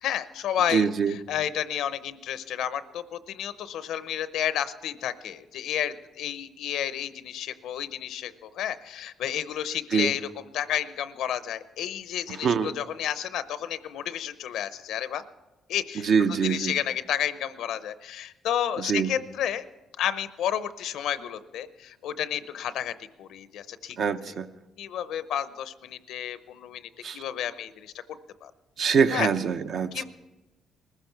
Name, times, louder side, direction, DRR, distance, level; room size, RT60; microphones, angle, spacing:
voice 1, 0.0-10.3 10.5-15.2 15.7-19.6 20.0-24.0 24.8-27.9 28.4-28.5 29.1-29.3 29.9-30.0, left 10 dB, 85° left, 14 dB, 0.7 m, -31 dB
voice 2, 0.7-1.2 9.9-10.1 12.3-12.7 16.0-16.7 18.8-19.1 24.0-24.5 27.0-27.2 28.8-30.0, right 6 dB, 65° right, 9 dB, 0.7 m, -24 dB
21.0 x 14.5 x 4.6 m, 1.1 s
cardioid pair, 90°, 0 cm